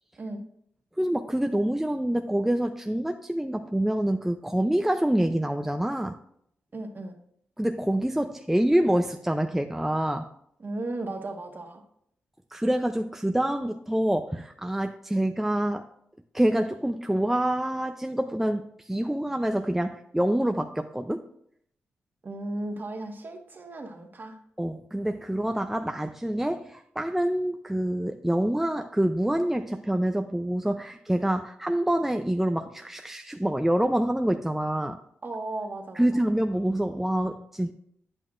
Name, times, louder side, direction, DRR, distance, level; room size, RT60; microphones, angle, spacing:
voice 1, 1.0-6.2 7.6-10.3 12.5-15.8 16.3-21.3 24.6-35.0 36.0-37.7, right 1 dB, 5° right, 5 dB, 0.5 m, -26 dB
voice 2, 6.7-7.2 10.6-11.8 22.2-24.4 35.2-36.2, right 2 dB, 45° right, 3 dB, 1.4 m, -35 dB
9.0 x 7.9 x 2.5 m, 0.69 s
cardioid pair, 60°, 5 cm